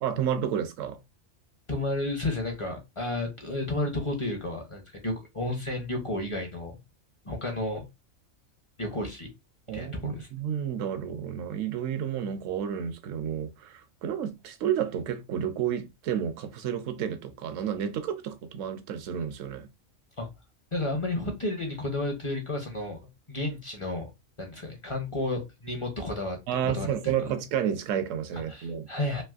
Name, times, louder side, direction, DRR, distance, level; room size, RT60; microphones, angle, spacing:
voice 1, 0.0-1.0 9.7-19.7 26.5-28.9, right 9 dB, 75° right, 0.9 m, -31 dB
voice 2, 1.7-6.8 7.2-7.9 8.8-9.3 9.7-10.3 20.2-20.3 20.7-23.0 23.3-24.1 24.4-26.4 26.6-27.3 28.3-29.2, left 2 dB, 35° left, 0.5 m, -32 dB
3.2 x 2.9 x 2.3 m
omnidirectional pair, 1.4 m